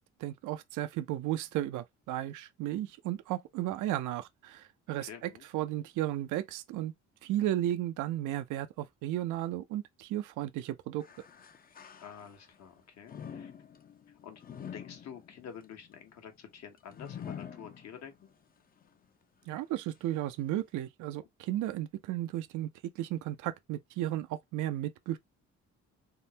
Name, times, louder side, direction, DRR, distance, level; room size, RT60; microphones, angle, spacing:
voice 1, 0.0-5.1 5.5-6.9 7.2-11.1 19.5-22.7 23.0-25.2, right 13 dB, 80° right, 0.5 m, -34 dB
voice 2, 5.0-5.5 12.0-13.5 14.1-14.4 14.7-18.3, left 7 dB, 60° left, 1.0 m, -48 dB
sound 1, 11.0-12.6 13.0-18.3 18.8-18.9 19.8-19.9, left 8 dB, 30° left, 0.5 m, -47 dB
3.6 x 2.0 x 2.7 m
cardioid pair, 90°, 30 cm